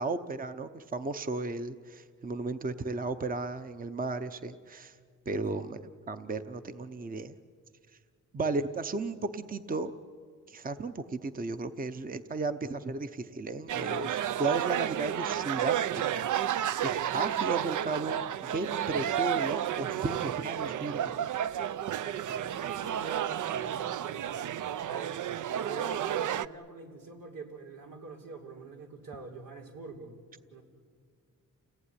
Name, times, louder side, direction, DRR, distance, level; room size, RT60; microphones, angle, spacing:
voice 1, 0.0-4.9 5.3-7.3 8.3-9.9 10.5-16.2 16.5-21.2, right 3 dB, 25° right, 10 dB, 0.8 m, -34 dB
voice 2, 5.3-5.7 22.0-24.3 24.8-25.2 25.5-30.2 30.5-30.6, right 4 dB, 90° right, 2 dB, 3.8 m, -45 dB
sound 1, 13.7-26.5, right 10 dB, 70° right, 0.6 m, -31 dB
29.5 x 18.0 x 9.9 m, 2.1 s
wide cardioid pair, 120°, 32 cm